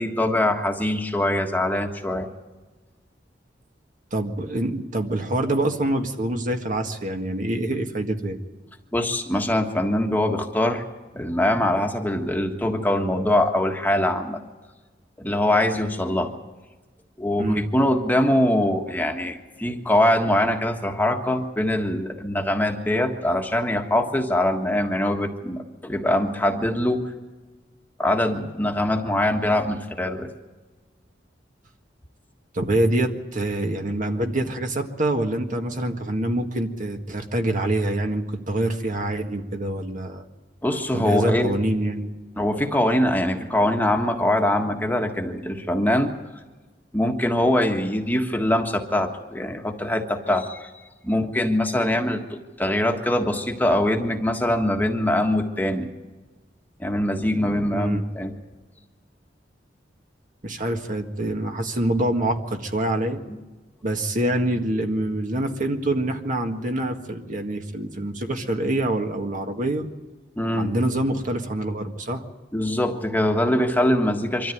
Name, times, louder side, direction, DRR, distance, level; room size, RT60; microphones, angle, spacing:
voice 1, 0.0-2.3 8.9-10.8 11.1-14.4 15.2-16.3 17.2-27.1 28.0-30.3 40.6-41.5 42.4-46.1 46.9-50.7 51.0-55.9 56.8-58.3 63.3-63.4 70.4-70.7 72.5-74.5, left 1 dB, 10° left, 3 dB, 1.6 m, -23 dB
voice 2, 4.1-8.4 17.4-17.7 32.5-40.2 40.9-42.1 57.7-58.0 60.4-63.2 63.8-69.9 70.6-72.2, right 1 dB, 45° right, 4 dB, 1.8 m, -25 dB
24.5 x 13.5 x 9.3 m, 1.2 s
head